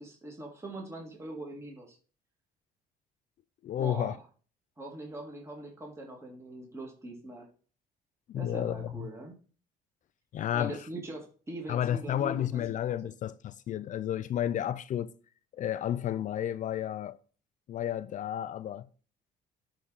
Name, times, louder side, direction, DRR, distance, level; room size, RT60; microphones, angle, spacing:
voice 1, 0.0-2.0 3.8-4.2 4.8-7.5 8.4-9.3 10.5-12.6, right 1 dB, 15° right, 2.1 m, -42 dB
voice 2, 3.6-4.2 8.3-9.1 10.3-10.8 11.7-15.1 15.5-17.2 17.7-18.9, left 11 dB, 50° left, 0.4 m, -32 dB
11.0 x 3.8 x 4.1 m
cardioid pair, 110°, 17 cm